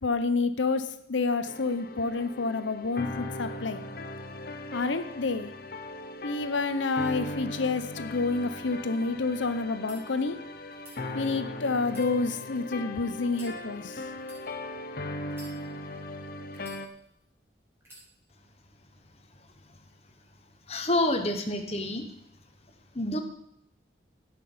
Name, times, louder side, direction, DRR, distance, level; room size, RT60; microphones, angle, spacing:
voice 1, 0.0-3.8 4.7-5.5 6.2-10.4 11.1-14.1, left 3 dB, 80° left, 10 dB, 0.8 m, -29 dB
sound 1, 1.5-16.9, left 1 dB, 50° left, 0.8 m, -39 dB
sound 2, 9.8-10.0 10.7-11.0 11.8-12.7 13.3-13.5 14.2-14.4 15.3-15.9 16.5-17.2 17.8-18.1, right 1 dB, 15° right, 5.5 m, -51 dB
voice 2, 20.7-22.1 22.9-23.2, left 1 dB, 35° left, 6 dB, 1.3 m, -28 dB
17.0 x 6.1 x 5.6 m, 0.75 s
head